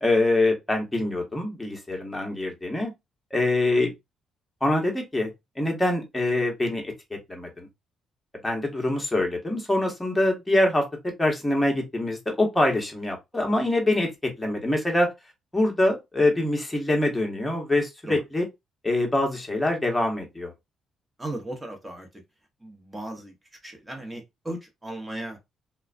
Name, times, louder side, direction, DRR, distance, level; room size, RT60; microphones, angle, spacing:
voice 1, 0.0-2.9 3.3-3.9 4.6-5.3 5.6-6.9 7.3-7.7 8.4-14.1 14.4-15.1 15.5-18.5 18.8-20.5, left 1 dB, 10° left, 1.0 m, -24 dB
voice 2, 21.2-22.2 22.6-23.3 23.6-25.4, right 1 dB, 15° right, 0.9 m, -36 dB
2.3 x 2.2 x 2.4 m
cardioid pair, 90°, 0 cm